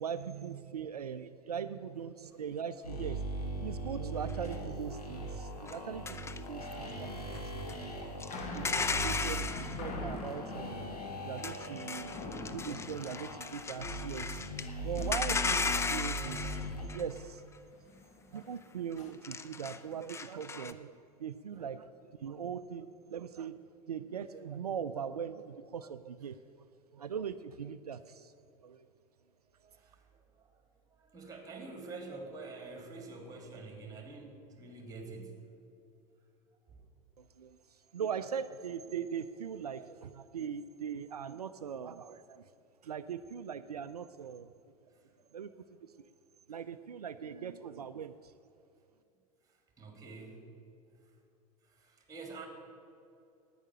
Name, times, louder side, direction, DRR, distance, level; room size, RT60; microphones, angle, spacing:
voice 1, 0.0-3.2 3.6-7.5 7.8-8.0 8.3-10.9 11.2-12.2 12.5-14.4 14.8-16.6 16.9-17.4 18.3-20.9 21.2-23.6 23.9-26.6 26.9-28.3 28.6-28.9 37.2-42.5 42.8-44.5 45.3-45.5 45.8-45.9 46.5-48.3, right 7 dB, 85° right, 12 dB, 0.4 m, -40 dB
sound 1, 2.3-2.5 2.8-3.2 3.5-5.2 5.5-5.9 6.4-14.7 15.0-16.8 17.1-17.4 17.7-19.1, left 3 dB, 40° left, 1.9 m, -48 dB
sound 2, 2.8-16.9, right 1 dB, 80° left, 2.1 m, -40 dB
sound 3, 4.3-4.5 5.7-5.8 6.1-6.7 7.3-7.7 8.2-9.8 11.4-14.7 15.0-17.2 19.1-20.7, left 4 dB, 15° left, 0.6 m, -36 dB
voice 2, 29.6-30.5 30.9-35.4 36.7-36.8 44.9-45.1 49.5-50.5 51.6-52.5, right 3 dB, 20° right, 3 dB, 3.1 m, -47 dB
11.0 x 9.3 x 8.6 m, 2.6 s
figure-of-eight pair, 85°, 19 cm